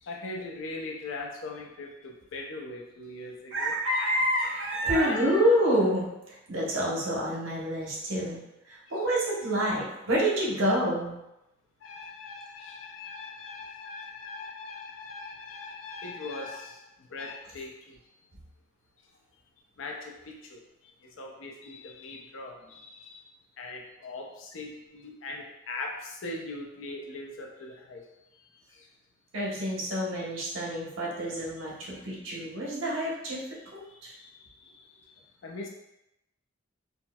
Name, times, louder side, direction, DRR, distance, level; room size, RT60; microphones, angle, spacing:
voice 1, 0.0-3.7 4.9-5.6 11.8-16.8 17.1-18.0 19.8-20.6 21.2-23.2 23.6-28.0 28.7-28.9 31.6-31.7 32.0-32.1 33.9-34.8 35.4-35.7, left 3 dB, 75° left, 1 dB, 0.5 m, -40 dB
voice 2, 3.5-8.4 8.7-11.2 29.3-33.4 33.7-34.1, equal, 85° right, -4 dB, 0.9 m, -28 dB
4.2 x 2.0 x 2.2 m, 0.89 s
head